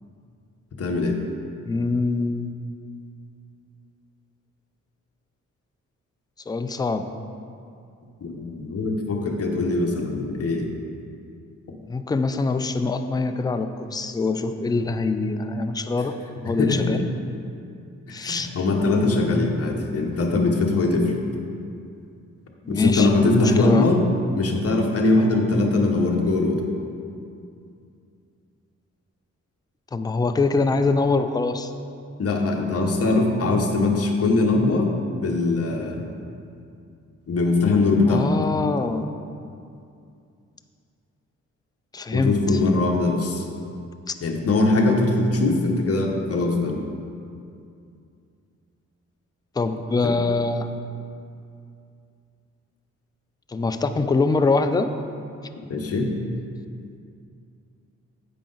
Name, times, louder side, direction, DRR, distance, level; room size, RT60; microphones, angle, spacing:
voice 1, 0.8-1.2 8.2-10.7 16.5-16.9 18.1-21.1 22.7-24.0 24.3-26.6 32.2-34.9 35.2-36.0 37.3-38.3 42.1-43.4 44.2-46.8 50.0-50.1 55.7-56.1, left 2 dB, 50° left, 1 dB, 1.0 m, -21 dB
voice 2, 1.7-2.6 6.5-7.1 11.9-16.2 16.4-17.0 18.1-18.5 22.6-23.9 29.9-31.7 38.1-39.0 41.9-42.4 44.1-44.2 49.6-50.7 53.5-54.9, left 3 dB, 15° left, 8 dB, 0.3 m, -24 dB
8.6 x 5.0 x 3.9 m, 2.5 s
cardioid pair, 90°, 31 cm